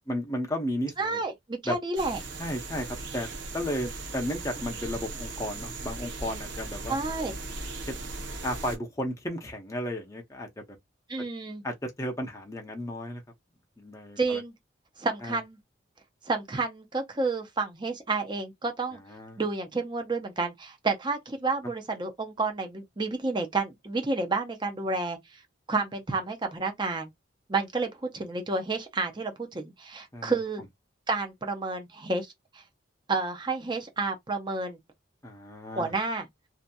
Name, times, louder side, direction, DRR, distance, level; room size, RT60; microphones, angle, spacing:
voice 1, 0.1-1.2 1.6-1.8 2.4-3.3 3.5-7.0 7.9-8.0 8.4-10.8 11.6-13.2 13.8-14.4 15.2-15.4 19.1-19.4 21.6-21.7 30.1-30.4 35.2-35.9, equal, 15° left, 0.6 m, -34 dB
voice 2, 1.0-2.2 6.9-7.3 11.1-11.6 14.2-14.5 15.0-15.6 16.3-19.0 19.4-25.2 25.7-27.1 27.5-30.6 31.1-32.6 33.1-34.8 35.8-36.3, right 3 dB, 25° right, 0.6 m, -30 dB
sound 1, 2.0-8.8, right 3 dB, 65° right, 0.8 m, -38 dB
2.7 x 2.5 x 2.2 m
head